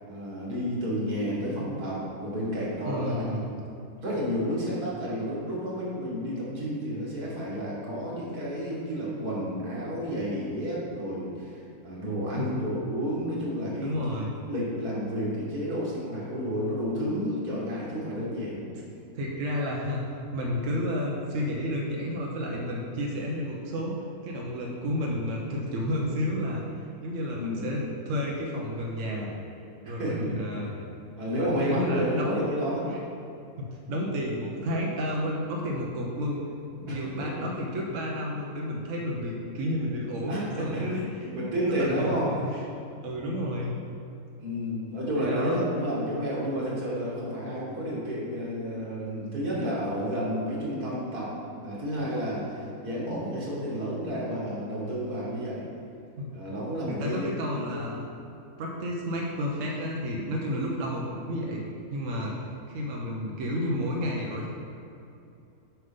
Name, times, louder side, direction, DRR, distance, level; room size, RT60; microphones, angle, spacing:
voice 1, 0.1-3.2 4.0-11.6 11.8-13.9 14.5-18.7 27.4-27.7 29.8-30.4 31.2-32.9 36.9-37.4 40.3-41.0 41.3-42.3 44.4-55.7 56.3-57.8, equal, 85° right, -6 dB, 2.5 m, -31 dB
voice 2, 2.8-3.4 12.4-12.6 13.8-14.3 19.1-24.0 24.2-29.3 29.9-30.7 31.3-32.4 32.9-33.0 33.6-36.4 36.8-42.6 43.0-43.7 45.1-45.7 56.2-56.3 56.9-58.0 58.6-62.3 62.7-64.5, equal, 60° right, -2 dB, 1.2 m, -31 dB
7.6 x 5.4 x 5.2 m, 2.6 s
omnidirectional pair, 1.6 m